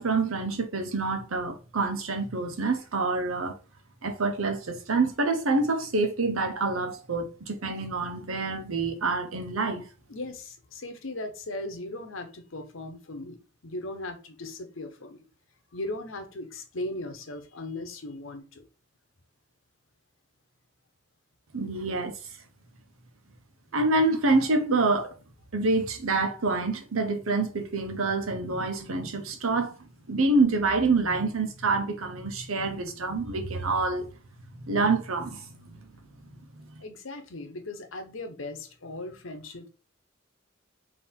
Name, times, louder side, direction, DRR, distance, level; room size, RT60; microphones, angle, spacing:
voice 1, 0.0-3.5 4.0-9.9 21.5-22.1 23.7-25.1 25.5-34.1 34.6-35.8 36.2-36.7, right 3 dB, 90° right, 0.9 m, -27 dB
voice 2, 10.1-15.2 15.7-18.6 36.8-39.7, left 2 dB, 75° left, 0.9 m, -38 dB
3.6 x 2.8 x 4.4 m
head